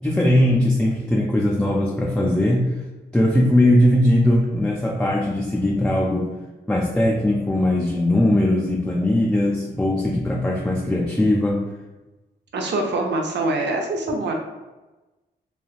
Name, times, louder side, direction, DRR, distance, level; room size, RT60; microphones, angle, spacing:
voice 1, 0.0-2.7 3.1-6.3 6.7-11.7, left 1 dB, 5° left, -3 dB, 0.4 m, -19 dB
voice 2, 12.5-14.3, right 2 dB, 60° right, 2 dB, 0.6 m, -24 dB
3.2 x 2.3 x 2.3 m, 1.1 s
supercardioid pair, 45°, 20 cm